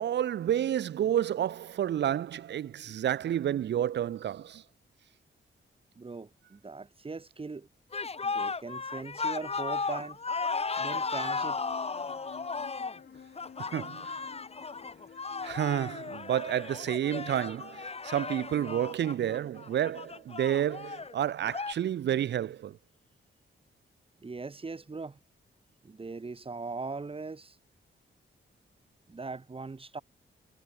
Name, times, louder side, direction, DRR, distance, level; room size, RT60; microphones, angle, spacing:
voice 1, 0.0-4.6 13.6-14.2 15.4-22.8, right 10 dB, 60° right, 0.5 m, -30 dB
voice 2, 6.0-7.7 8.2-10.2 10.8-11.6 24.2-25.2 25.8-27.6 29.1-30.0, right 3 dB, 25° right, 2.1 m, -40 dB
sound 1, 7.9-21.7, left 4 dB, 30° left, 1.7 m, -35 dB
sound 2, 10.8-16.3, left 7 dB, 60° left, 5.2 m, -52 dB
wide cardioid pair, 140°, 21 cm